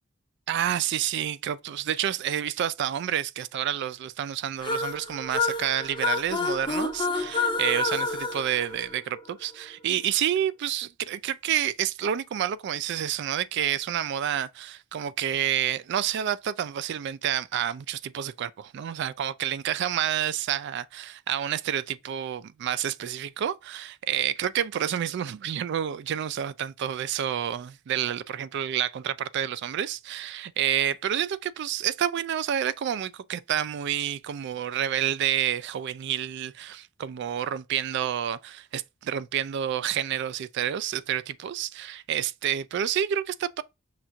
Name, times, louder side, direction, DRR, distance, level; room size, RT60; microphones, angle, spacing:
voice 1, 0.5-43.6, right 10 dB, 60° right, 0.3 m, -29 dB
sound 1, 4.6-9.3, left 3 dB, 25° left, 0.6 m, -29 dB
5.8 x 2.4 x 2.6 m
head